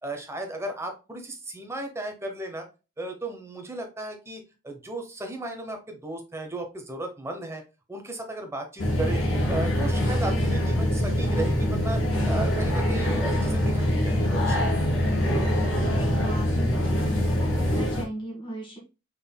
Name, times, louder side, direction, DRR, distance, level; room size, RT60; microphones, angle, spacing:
voice 1, 0.0-2.7 3.0-7.6 7.9-9.2 9.5-12.0 12.3-14.7, right 1 dB, 15° right, 3 dB, 0.8 m, -35 dB
sound 1, 8.8-18.0, equal, 70° left, 1.5 m, -24 dB
voice 2, 15.9-18.8, equal, 25° left, -2 dB, 1.5 m, -38 dB
5.3 x 4.0 x 2.2 m, 0.30 s
head